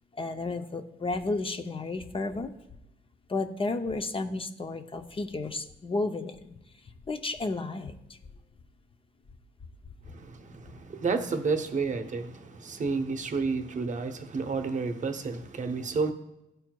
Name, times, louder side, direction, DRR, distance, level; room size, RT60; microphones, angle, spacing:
voice 1, 0.2-2.5 3.3-6.4 7.1-7.9, left 3 dB, 25° left, 0.5 m, -32 dB
voice 2, 10.1-16.1, right 4 dB, 40° right, 0.8 m, -31 dB
12.0 x 4.4 x 2.2 m
cardioid pair, 90°, 20 cm